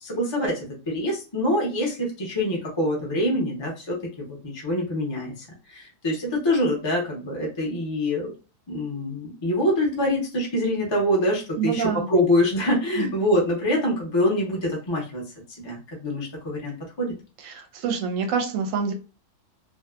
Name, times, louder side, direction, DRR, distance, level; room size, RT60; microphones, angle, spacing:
voice 1, 0.0-8.3 8.7-15.2 15.6-17.1, left 1 dB, 35° left, -2 dB, 0.4 m, -25 dB
voice 2, 11.6-12.1 13.0-13.1 17.4-18.9, right 6 dB, 65° right, 4 dB, 0.9 m, -26 dB
2.7 x 2.3 x 2.3 m, 0.33 s
omnidirectional pair, 1.7 m